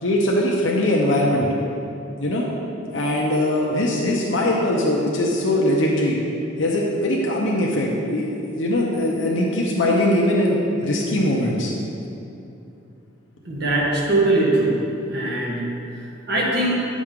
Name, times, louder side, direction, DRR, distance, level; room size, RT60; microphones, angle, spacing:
voice 1, 0.0-1.5 2.2-2.5 2.9-6.2 6.6-10.6 10.8-11.7, left 1 dB, 75° left, -3 dB, 0.8 m, -21 dB
voice 2, 13.4-14.8 15.1-15.6 16.3-16.7, right 2 dB, 60° right, -4 dB, 1.5 m, -21 dB
8.9 x 6.2 x 3.6 m, 2.8 s
head